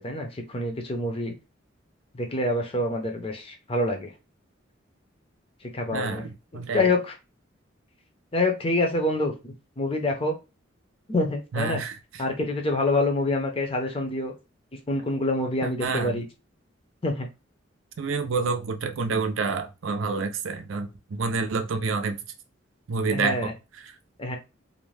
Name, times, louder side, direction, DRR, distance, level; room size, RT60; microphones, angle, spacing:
voice 1, 0.0-1.3 2.1-4.1 5.6-6.3 6.5-7.1 8.3-10.3 11.1-11.8 12.2-14.3 14.7-16.2 17.0-17.3 23.1-23.5 24.2-24.4, left 2 dB, 30° left, 0.6 m, -26 dB
voice 2, 5.9-6.9 11.5-12.2 15.6-16.2 18.0-22.2 22.9-23.5 23.8-23.9, right 4 dB, 80° right, 0.5 m, -28 dB
2.6 x 2.1 x 3.2 m
head